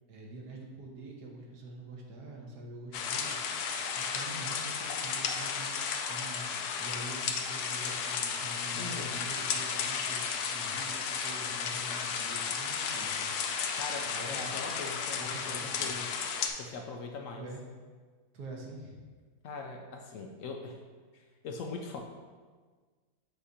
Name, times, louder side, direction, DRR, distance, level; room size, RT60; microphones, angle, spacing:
voice 1, 0.1-13.3 13.7-14.6 15.2-15.9 17.4-17.6 18.3-19.0, right 1 dB, 90° right, 0 dB, 1.6 m, -46 dB
sound 1, 2.9-16.5, left 6 dB, 85° left, 1.2 m, -34 dB
voice 2, 8.7-9.3 13.8-16.1 16.6-17.5 19.4-20.8 21.1-22.0, left 4 dB, 70° left, 3 dB, 0.8 m, -41 dB
8.0 x 2.8 x 4.8 m, 1.5 s
omnidirectional pair, 1.7 m